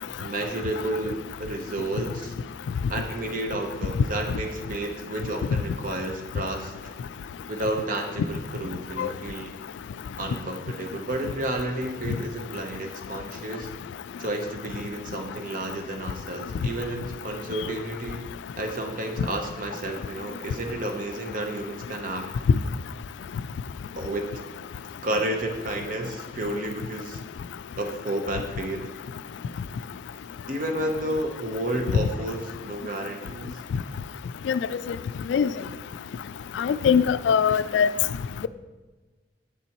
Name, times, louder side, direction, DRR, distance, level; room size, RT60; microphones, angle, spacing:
voice 1, 0.2-2.3 2.9-6.9 7.5-9.5 10.2-13.7 14.2-18.3 18.6-22.3 24.0-24.3 25.0-27.2 27.8-28.8 30.5-33.6, right 1 dB, 50° right, 4 dB, 0.9 m, -31 dB
voice 2, 36.6-37.9, left 7 dB, 85° left, 14 dB, 0.3 m, -21 dB
7.6 x 6.8 x 3.0 m, 1.3 s
head